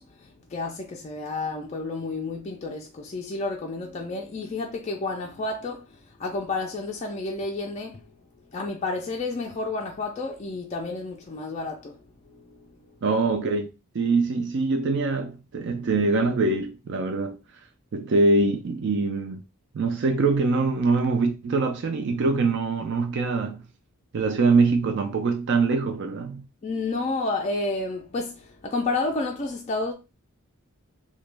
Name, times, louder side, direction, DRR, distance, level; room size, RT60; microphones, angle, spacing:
voice 1, 0.0-8.1 8.5-12.9 26.6-29.9, left 3 dB, 30° left, 0.3 m, -31 dB
voice 2, 13.0-17.4 17.9-19.4 19.7-23.6 24.1-26.4, right 3 dB, 55° right, 0.3 m, -23 dB
2.9 x 2.2 x 3.2 m
head